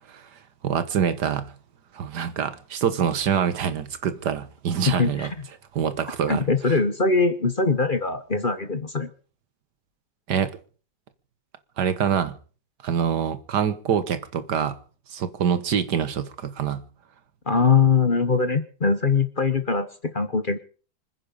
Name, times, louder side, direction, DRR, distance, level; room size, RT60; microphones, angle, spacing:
voice 1, 0.6-1.5 1.9-5.3 5.7-6.5 10.3-10.6 11.8-12.3 12.8-14.8 15.1-16.8, right 7 dB, 75° right, 1.8 m, -25 dB
voice 2, 4.9-5.5 6.3-9.1 17.5-20.6, left 4 dB, 35° left, 1.2 m, -22 dB
25.5 x 9.9 x 5.4 m
omnidirectional pair, 1.8 m